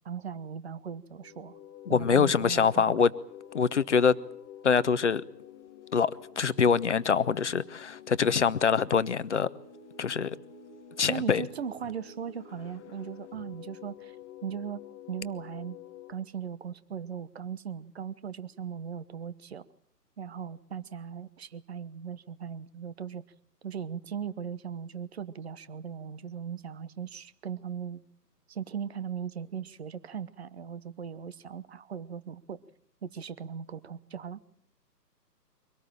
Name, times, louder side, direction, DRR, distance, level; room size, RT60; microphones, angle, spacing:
voice 1, 0.0-1.6 1.9-3.0 11.1-14.2 14.4-15.8 16.1-19.6 20.2-23.2 23.6-28.0 28.5-32.6 33.0-34.4, right 7 dB, 40° right, 1.1 m, -38 dB
sound 1, 1.1-16.1, left 8 dB, 15° left, 1.0 m, -49 dB
voice 2, 1.9-3.1 3.5-4.2 4.6-5.2 5.9-9.5 10.0-10.4 11.0-11.4, left 6 dB, 45° left, 0.9 m, -24 dB
24.5 x 18.5 x 8.9 m
figure-of-eight pair, 140°, 50 cm